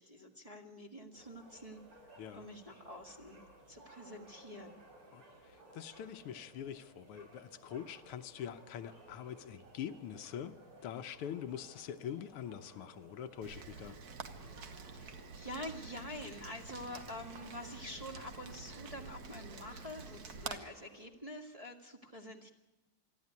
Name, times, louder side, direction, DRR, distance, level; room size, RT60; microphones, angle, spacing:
voice 1, 0.0-1.8 2.3-3.4 3.7-4.8 14.9-22.5, left 1 dB, 20° right, -2 dB, 1.6 m, -47 dB
sound 1, 1.1-21.1, right 1 dB, 80° right, 5.9 m, -59 dB
voice 2, 5.1-14.0, left 9 dB, 85° left, 9 dB, 1.8 m, -44 dB
Rain, 13.4-20.6, right 5 dB, 50° right, 1.5 m, -48 dB
26.5 x 11.5 x 9.4 m, 1.0 s
omnidirectional pair, 2.4 m